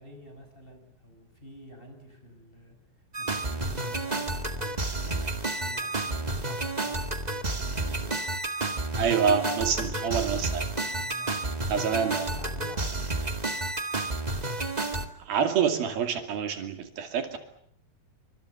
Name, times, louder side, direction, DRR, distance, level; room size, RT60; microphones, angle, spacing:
voice 1, 0.0-2.8 3.2-5.2 5.6-8.2 8.8-10.0 10.9-13.1, equal, 15° left, 5 dB, 6.1 m, -48 dB
sound 1, 3.1-15.1, right 2 dB, 25° right, 0.8 m, -31 dB
voice 2, 9.0-10.7 11.7-12.3 15.2-17.4, right 7 dB, 80° right, 6 dB, 4.4 m, -27 dB
28.5 x 25.5 x 7.0 m, 0.64 s
omnidirectional pair, 4.2 m